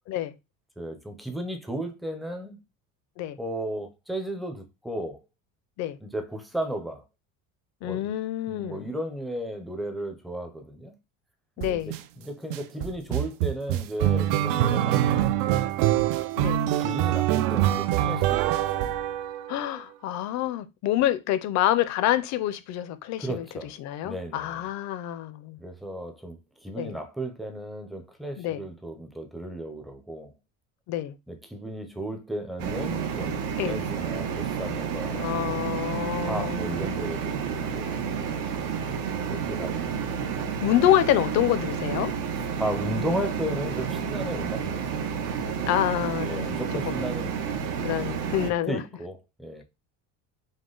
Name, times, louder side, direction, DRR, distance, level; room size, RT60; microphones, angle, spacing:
voice 1, 0.8-2.6 3.4-5.2 6.0-7.0 7.8-8.1 8.5-10.9 11.6-15.1 16.8-18.8 23.2-23.7 24.0-24.6 25.6-30.3 31.3-35.7 36.2-38.1 39.3-40.0 42.3-45.2 46.2-48.2 48.4-49.6, right 1 dB, ahead, 0.5 m, -35 dB
voice 2, 7.8-8.9 11.6-11.9 16.4-16.7 19.5-23.5 23.8-25.6 26.8-27.0 28.4-28.6 30.9-31.1 33.6-33.8 35.1-36.8 40.6-42.1 45.7-46.5 46.9-47.0 47.8-48.8, left 12 dB, 50° left, 0.6 m, -27 dB
sound 1, 11.6-12.0 12.5-19.7, right 12 dB, 65° right, 0.5 m, -24 dB
sound 2, 32.6-48.5, right 7 dB, 80° right, 1.0 m, -30 dB
5.1 x 2.1 x 3.8 m
cardioid pair, 165°, 35 cm